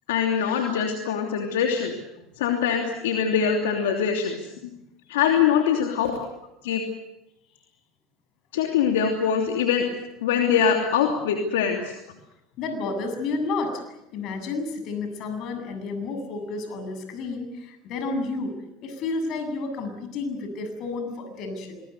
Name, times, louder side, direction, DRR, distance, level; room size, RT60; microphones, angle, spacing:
voice 1, 0.1-1.9 2.4-4.5 5.1-6.1 6.6-6.8 8.5-9.9 10.2-11.9, left 7 dB, 80° left, 2 dB, 3.0 m, -23 dB
voice 2, 12.6-13.8 14.1-18.6 18.8-21.8, left 3 dB, 55° left, 7 dB, 7.5 m, -31 dB
25.5 x 21.0 x 8.2 m, 0.88 s
hypercardioid pair, 85°, 0 cm